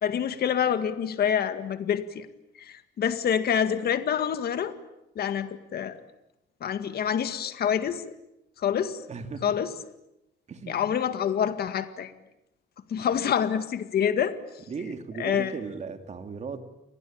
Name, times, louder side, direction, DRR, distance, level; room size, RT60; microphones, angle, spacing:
voice 1, 0.0-2.3 2.6-4.7 5.2-6.0 6.6-8.1 8.6-9.0 9.4-9.7 10.7-12.1 12.9-14.3 15.2-15.5, left 8 dB, 50° left, 10 dB, 2.0 m, -27 dB
voice 2, 9.1-9.5 10.5-10.8 14.7-16.6, right 5 dB, 35° right, 7 dB, 2.7 m, -36 dB
29.5 x 21.5 x 8.9 m, 0.89 s
cardioid pair, 145°, 20 cm